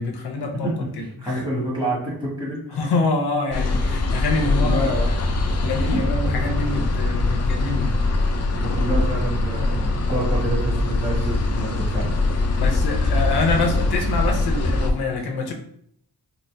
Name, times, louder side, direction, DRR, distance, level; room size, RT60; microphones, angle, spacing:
voice 1, 0.0-1.4 2.7-4.8 5.1-5.4 5.6-8.0 12.6-15.5, left 3 dB, 80° left, 3 dB, 0.8 m, -26 dB
voice 2, 1.2-2.8 4.4-5.2 5.6-5.8 8.5-12.1, right 1 dB, 10° right, -5 dB, 1.5 m, -28 dB
sound 1, 3.5-14.9, left 2 dB, 40° left, 0.5 m, -22 dB
4.0 x 2.0 x 3.3 m, 0.65 s
wide cardioid pair, 140°, 38 cm